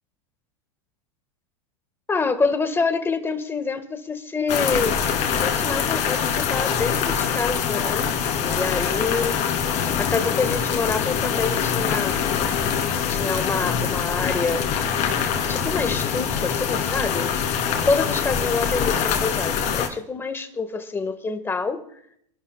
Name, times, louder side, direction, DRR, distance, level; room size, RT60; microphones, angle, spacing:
voice 1, 2.1-5.0 5.3-9.4 10.0-12.2 13.1-14.7 15.5-17.3 17.7-21.8, left 4 dB, 15° left, 8 dB, 1.4 m, -26 dB
sound 1, 4.5-19.9, left 7 dB, 45° left, 2.5 m, -24 dB
27.0 x 11.5 x 2.2 m, 0.68 s
hypercardioid pair, 115°, 17 cm